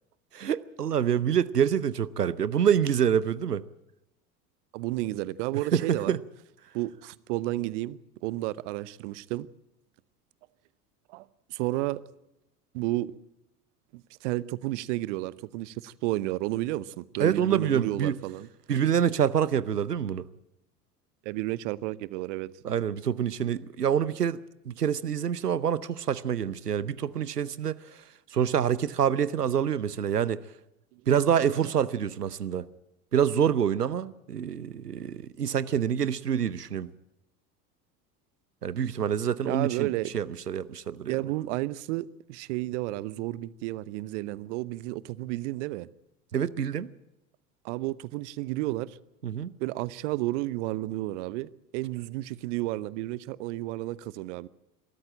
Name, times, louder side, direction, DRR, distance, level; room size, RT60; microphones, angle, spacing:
voice 1, 0.3-3.6 5.5-6.2 17.2-18.2 18.7-20.3 22.6-24.4 24.7-27.8 28.3-30.4 31.1-32.7 33.1-36.9 38.6-41.2 46.3-46.9 49.2-49.5, right 8 dB, 85° right, 0.7 m, -26 dB
voice 2, 4.7-6.1 6.7-9.5 11.1-11.2 11.5-12.0 12.7-13.1 13.9-18.5 21.2-22.5 39.5-40.1 41.1-45.9 47.6-49.0 49.6-54.5, right 18 dB, 50° right, 0.8 m, -32 dB
23.0 x 13.5 x 8.8 m
figure-of-eight pair, 75°, 46 cm